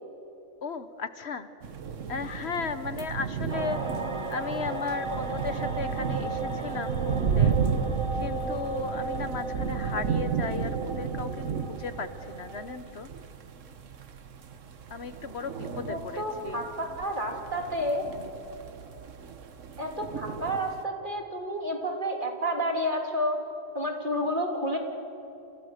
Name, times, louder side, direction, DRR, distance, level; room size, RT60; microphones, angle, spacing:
voice 1, 0.6-1.5 2.1-3.8 4.3-7.6 8.2-11.3 11.7-13.1 14.9-16.6, left 5 dB, 60° left, 11 dB, 1.2 m, -35 dB
sound 1, 1.6-20.8, right 6 dB, 85° right, 1.5 m, -33 dB
sound 2, 3.5-12.8, right 3 dB, 25° right, 1.4 m, -36 dB
voice 2, 15.9-18.0 19.8-23.4 23.7-24.8, equal, 40° right, 2 dB, 3.4 m, -30 dB
29.5 x 28.5 x 6.6 m, 2.9 s
omnidirectional pair, 1.3 m